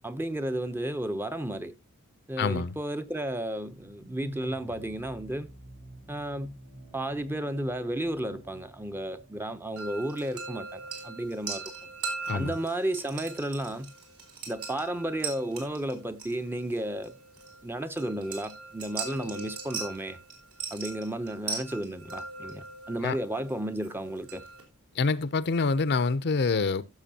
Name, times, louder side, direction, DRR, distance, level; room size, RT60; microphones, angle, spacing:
voice 1, 0.0-1.7 2.3-5.5 6.1-6.6 6.9-11.6 12.3-13.9 14.5-17.1 17.6-20.2 20.7-24.4, right 1 dB, 10° right, 0.6 m, -33 dB
voice 2, 2.4-2.7 12.3-12.5 23.0-23.2 25.0-26.8, left 4 dB, 50° left, 0.6 m, -26 dB
sound 1, 3.5-9.8, right 1 dB, 55° right, 3.5 m, -49 dB
sound 2, 9.8-24.6, right 4 dB, 75° right, 4.1 m, -40 dB
15.5 x 6.7 x 2.8 m
head